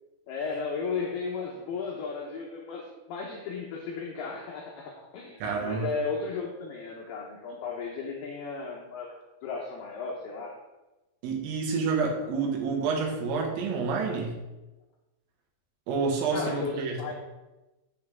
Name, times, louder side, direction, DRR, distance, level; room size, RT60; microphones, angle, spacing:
voice 1, 0.3-10.6 16.3-17.1, left 4 dB, 80° left, -1 dB, 2.3 m, -35 dB
voice 2, 5.4-5.9 11.2-14.4 15.9-17.1, right 4 dB, 80° right, -1 dB, 4.3 m, -28 dB
10.5 x 8.2 x 3.6 m, 1.1 s
omnidirectional pair, 5.9 m